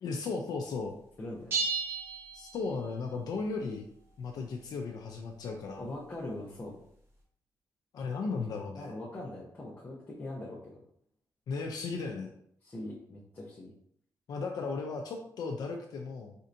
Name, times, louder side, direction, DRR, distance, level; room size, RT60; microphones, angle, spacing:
voice 1, 0.0-0.9 2.3-3.8 4.2-5.9 7.9-8.9 11.5-12.3 14.3-16.4, left 4 dB, 65° left, 2 dB, 0.4 m, -36 dB
voice 2, 1.2-1.6 5.8-6.8 8.8-10.8 12.6-13.7, left 1 dB, 25° left, -6 dB, 0.7 m, -41 dB
sound 1, 1.5-3.1, right 4 dB, 35° right, 0.9 m, -34 dB
4.3 x 2.7 x 2.5 m, 0.68 s
wide cardioid pair, 150°, 7 cm